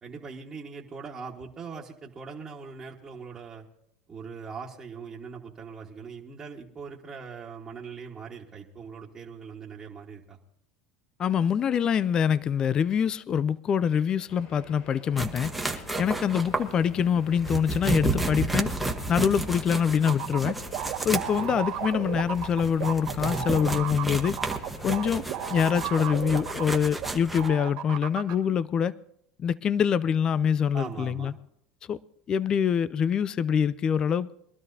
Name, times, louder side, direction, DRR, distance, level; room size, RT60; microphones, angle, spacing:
voice 1, 0.0-3.7 4.1-10.4 30.7-31.4, right 5 dB, 25° right, 1.6 m, -41 dB
voice 2, 11.2-18.7 19.1-20.6 21.0-24.4 24.8-25.2 25.5-28.9 29.4-31.3 31.9-32.0 32.3-34.3, left 8 dB, 35° left, 0.4 m, -25 dB
sound 1, 14.3-25.8, left 3 dB, 65° left, 6.6 m, -49 dB
sound 2, 15.2-27.5, right 2 dB, 5° right, 1.2 m, -32 dB
sound 3, 20.1-27.1 27.4-28.3, right 11 dB, 60° right, 2.2 m, -33 dB
23.0 x 12.5 x 2.7 m
supercardioid pair, 105°, 2 cm